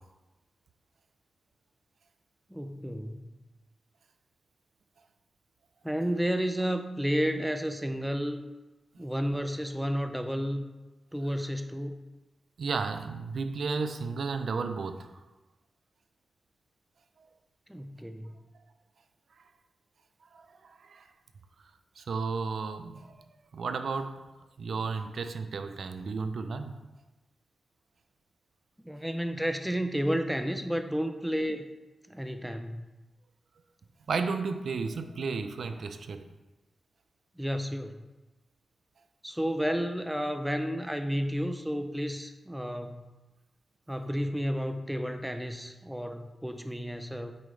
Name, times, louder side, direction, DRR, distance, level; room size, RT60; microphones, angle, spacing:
voice 1, 2.5-3.3 5.8-8.4 9.0-10.7 11.1-12.0 17.7-18.4 28.8-31.6 32.1-32.9 37.4-38.0 39.2-43.0 43.9-47.4, equal, 5° right, 7 dB, 0.5 m, -31 dB
voice 2, 12.6-15.1 20.3-21.1 22.0-23.2 23.5-24.2 24.6-26.8 34.1-36.2, right 4 dB, 75° right, 8 dB, 0.5 m, -33 dB
8.3 x 5.0 x 3.3 m, 1.1 s
cardioid pair, 60°, 0 cm